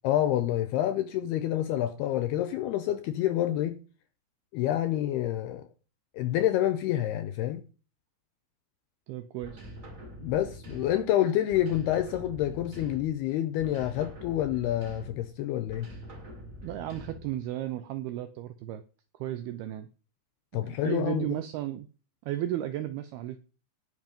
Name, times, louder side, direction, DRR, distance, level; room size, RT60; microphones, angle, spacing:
voice 1, 0.0-3.8 4.5-5.7 6.1-7.6 10.2-15.9 20.5-21.4, left 12 dB, 80° left, 2.4 m, -28 dB
voice 2, 9.1-9.6 16.6-18.8 19.2-19.9 20.5-21.9 22.2-23.4, right 13 dB, 85° right, 2.2 m, -34 dB
sound 1, 9.4-11.1 11.5-13.2 13.6-15.3 15.7-17.4, equal, 35° right, 1.2 m, -45 dB
18.5 x 6.2 x 5.3 m
omnidirectional pair, 5.4 m